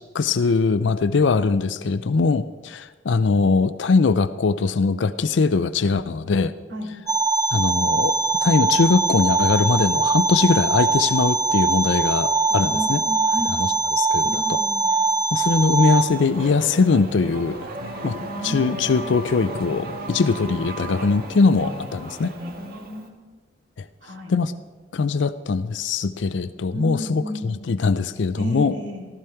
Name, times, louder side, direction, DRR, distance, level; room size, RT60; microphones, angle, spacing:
voice 1, 0.1-6.5 7.5-13.0 13.6-14.6 15.3-17.7 18.0-18.1 18.4-22.3 24.3-24.5 24.9-28.7, left 4 dB, 70° left, 13 dB, 0.5 m, -21 dB
sound 1, 7.1-16.0, right 3 dB, 20° right, 0.8 m, -22 dB
voice 2, 12.5-13.6 14.2-14.9 18.1-19.0 22.4-23.3 24.0-24.3 26.7-27.6 28.4-29.1, left 1 dB, 70° right, 0 dB, 2.7 m, -33 dB
Race car auto racing / Accelerating revving vroom, 15.8-23.1, right 1 dB, 55° right, 1.5 m, -35 dB
15.0 x 13.5 x 4.5 m, 1.4 s
head